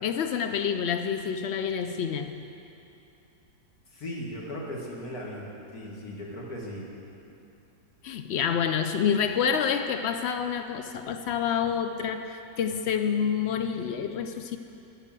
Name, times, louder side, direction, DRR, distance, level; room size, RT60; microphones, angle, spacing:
voice 1, 0.0-2.4 8.0-14.6, left 7 dB, 85° left, 8 dB, 0.5 m, -28 dB
voice 2, 3.9-6.9, equal, 65° left, -3 dB, 2.3 m, -37 dB
10.0 x 10.0 x 7.5 m, 2.8 s
omnidirectional pair, 1.7 m